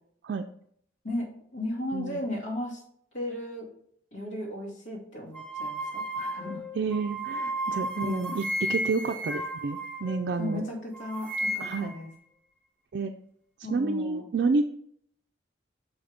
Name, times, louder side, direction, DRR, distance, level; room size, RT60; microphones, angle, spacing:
voice 1, 1.0-2.8 3.1-3.7 4.1-6.6 7.9-8.4 10.4-12.1 13.6-14.2, left 1 dB, 85° left, -3 dB, 2.2 m, -35 dB
sound 1, 5.3-10.6 10.9-12.0, right 1 dB, 10° left, 0.7 m, -33 dB
voice 2, 6.8-10.6 11.6-11.9 12.9-13.1 13.7-14.6, right 4 dB, 60° right, 4 dB, 0.3 m, -29 dB
6.1 x 5.1 x 3.4 m, 0.67 s
head